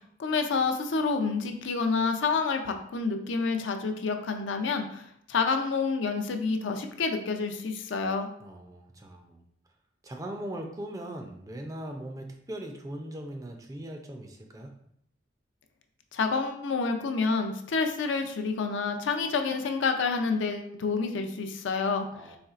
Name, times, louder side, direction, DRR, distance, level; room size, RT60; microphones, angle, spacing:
voice 1, 0.0-5.0 5.3-8.3 16.1-22.1, left 4 dB, 75° left, 6 dB, 0.4 m, -28 dB
voice 2, 8.4-9.4 10.0-14.7 22.1-22.4, right 1 dB, 20° right, 3 dB, 0.3 m, -40 dB
4.2 x 3.1 x 2.4 m, 0.71 s
head